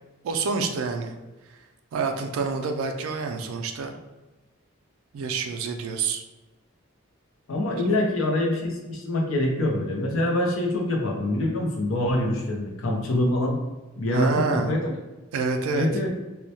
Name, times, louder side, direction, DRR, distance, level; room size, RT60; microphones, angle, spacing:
voice 1, 0.2-1.1 1.9-4.0 5.1-6.2 7.9-8.0 14.1-14.7 15.3-15.9, right 4 dB, 75° right, 5 dB, 0.3 m, -27 dB
voice 2, 7.5-13.6 14.0-14.9 15.7-16.1, left 1 dB, 70° left, 0 dB, 0.5 m, -25 dB
2.1 x 2.0 x 2.7 m, 1.1 s
head